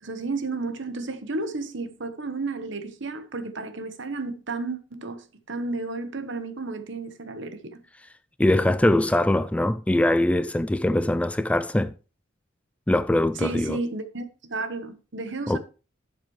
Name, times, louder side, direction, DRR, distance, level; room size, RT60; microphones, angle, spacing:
voice 1, 0.0-7.8 13.4-15.6, right 3 dB, 65° right, 1.2 m, -32 dB
voice 2, 8.4-11.9 12.9-13.8 15.5-15.6, left 1 dB, 5° left, 0.3 m, -22 dB
11.5 x 7.5 x 3.2 m
head